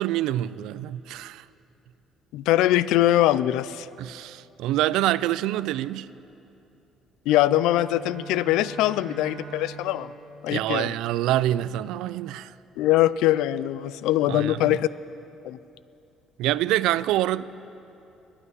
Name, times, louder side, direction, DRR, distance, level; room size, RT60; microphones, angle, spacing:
voice 1, 0.0-1.4 4.0-6.1 10.5-12.5 14.3-14.8 16.4-17.4, right 14 dB, 80° right, 18 dB, 0.3 m, -26 dB
voice 2, 2.3-3.9 7.3-10.1 10.4-10.9 12.8-14.9 15.4-15.6, left 14 dB, 85° left, 18 dB, 0.4 m, -22 dB
Bowed string instrument, 7.3-11.7, right 6 dB, 45° right, 2.7 m, -44 dB
15.5 x 9.8 x 8.1 m, 2.8 s
cardioid pair, 140°, 0 cm